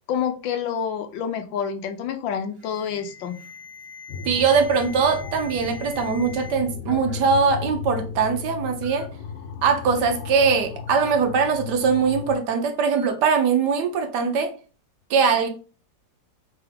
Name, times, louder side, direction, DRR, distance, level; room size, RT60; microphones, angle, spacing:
voice 1, 0.1-3.4, left 8 dB, 90° left, 1.4 m, -28 dB
Alarm, 2.5-6.5 6.8-7.3 8.1-8.2 8.8-9.0 10.9-11.1 12.9-13.1, left 4 dB, 25° right, 1.2 m, -43 dB
sound 1, 4.1-12.4, left 6 dB, 70° left, 1.3 m, -35 dB
voice 2, 4.2-9.1 9.6-14.5 15.1-15.5, right 5 dB, 70° right, 1.3 m, -21 dB
3.8 x 3.4 x 3.4 m
omnidirectional pair, 2.0 m